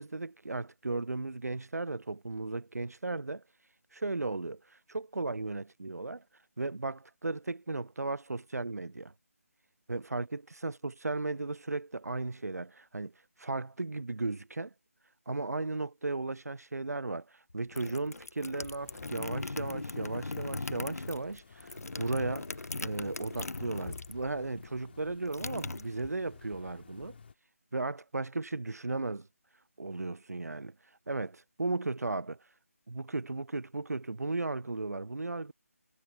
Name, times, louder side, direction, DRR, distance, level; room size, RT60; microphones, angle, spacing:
voice 1, 0.0-3.4 3.9-6.2 6.6-9.1 9.9-13.1 13.4-14.7 15.3-22.5 22.8-27.2 27.7-29.3 29.8-30.8 31.1-32.4 32.9-35.5, right 3 dB, 90° right, 0.4 m, -35 dB
sound 1, 17.5-24.3 24.6-26.4, left 2 dB, 80° left, 0.7 m, -39 dB
sound 2, 18.6-27.3, left 5 dB, 45° left, 2.7 m, -52 dB
figure-of-eight pair, 155°, 8 cm